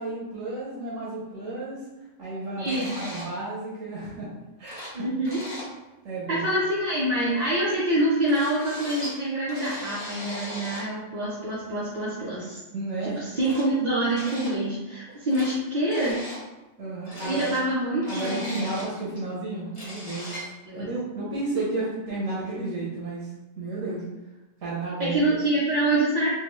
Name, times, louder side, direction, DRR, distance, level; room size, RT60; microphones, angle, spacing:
voice 1, 0.0-1.8 2.2-4.3 4.6-5.1 6.0-6.4 12.7-13.2 16.8-17.4 18.1-20.3 20.7-23.3 23.6-24.0 24.6-25.2, right 2 dB, 85° right, -7 dB, 1.2 m, -32 dB
sound 1, 2.6-3.3 4.3-4.4 4.7-5.0 5.2-5.7 8.2-9.1 9.5-10.9 12.3-12.4 13.4-13.7 14.1-14.6 14.9-15.6 15.9-16.4 17.0-18.9 19.4-19.5 19.7-20.5, equal, 25° left, 0.9 m, -38 dB
voice 2, 2.6-3.1 4.9-5.4 6.3-12.6 13.0-16.1 17.2-18.7 20.7-20.9 25.0-26.3, right 1 dB, 45° right, -8 dB, 0.6 m, -26 dB
3.5 x 2.2 x 3.0 m, 1.1 s
omnidirectional pair, 1.3 m